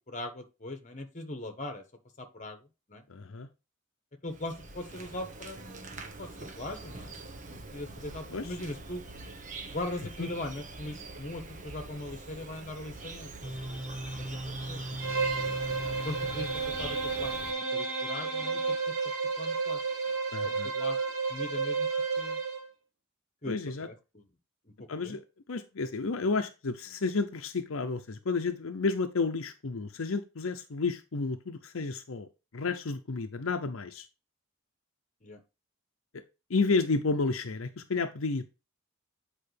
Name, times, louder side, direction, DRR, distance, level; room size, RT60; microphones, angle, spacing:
voice 1, 0.1-1.8 2.2-2.6 2.9-3.0 4.2-7.1 7.4-9.0 9.7-13.3 13.7-14.3 14.7-14.9 16.0-16.5 16.8-17.3 17.7-18.9 19.4-19.8 20.4-21.0 21.3-21.9 22.2-22.4 23.4-24.2 24.8-25.2 35.2-35.4, left 1 dB, 35° left, 1.3 m, -40 dB
voice 2, 3.1-3.5 8.3-8.5 10.2-10.3 15.3-15.5 20.3-20.7 23.5-23.9 24.9-25.2 25.5-32.3 32.5-34.1 36.1-36.2 36.5-38.5, left 4 dB, 75° left, 0.7 m, -31 dB
Insect, 4.3-17.5, right 3 dB, 35° right, 1.0 m, -44 dB
sound 1, 13.4-18.8, right 1 dB, 5° right, 0.7 m, -39 dB
Bowed string instrument, 15.0-22.7, right 4 dB, 75° right, 3.6 m, -32 dB
8.8 x 5.0 x 3.4 m
head